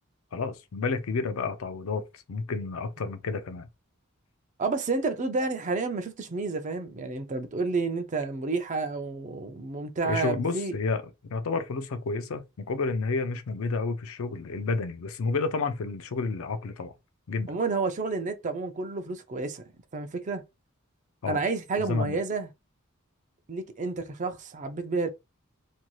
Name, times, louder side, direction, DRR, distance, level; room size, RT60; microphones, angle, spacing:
voice 1, 0.3-3.7 10.0-16.9 17.3-17.5 21.2-21.4 21.8-22.2, left 4 dB, 75° left, 0.5 m, -30 dB
voice 2, 4.6-10.7 17.5-19.6 19.9-20.4 21.2-22.5 23.5-25.1, right 3 dB, 35° right, 0.4 m, -30 dB
3.0 x 2.6 x 2.3 m
head